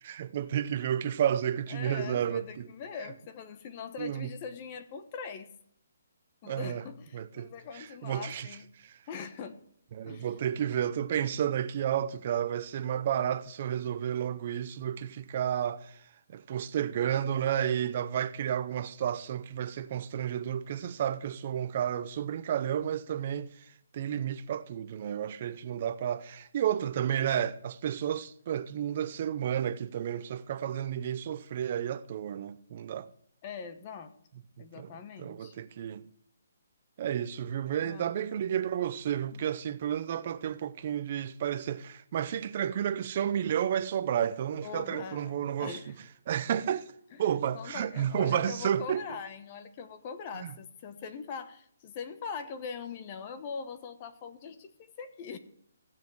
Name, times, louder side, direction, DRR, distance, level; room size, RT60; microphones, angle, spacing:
voice 1, 0.0-2.7 4.0-4.3 6.4-6.8 7.1-8.5 8.8-9.0 9.9-16.0 16.3-33.1 34.6-34.9 35.2-36.1 37.0-45.9 46.3-46.9 47.2-49.0 50.3-50.5, right 9 dB, 40° right, 0.6 m, -31 dB
voice 2, 1.7-5.5 6.4-8.7 9.1-9.6 10.0-10.3 33.4-34.1 34.6-35.6 37.8-38.1 39.3-39.5 44.6-45.9 47.1-47.2 47.5-55.4, left 6 dB, 30° left, 1.0 m, -42 dB
15.0 x 7.5 x 4.7 m
hypercardioid pair, 160°, 0 cm